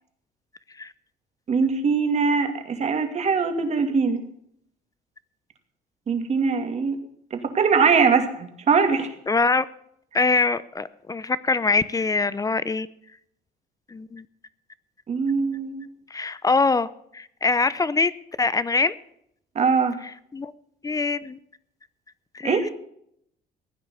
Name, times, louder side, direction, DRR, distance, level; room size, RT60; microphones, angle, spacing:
voice 1, 1.5-4.2 6.1-7.0 7.3-9.1 15.1-15.9 19.5-19.9 22.4-22.7, right 5 dB, 40° right, 6 dB, 2.5 m, -22 dB
voice 2, 9.3-9.6 10.1-12.9 13.9-14.2 16.1-18.1 18.4-18.9 20.3-20.5 20.8-21.4 22.3-22.7, left 4 dB, 20° left, 17 dB, 0.7 m, -23 dB
16.0 x 9.4 x 7.0 m, 0.71 s
cardioid pair, 110°, 17 cm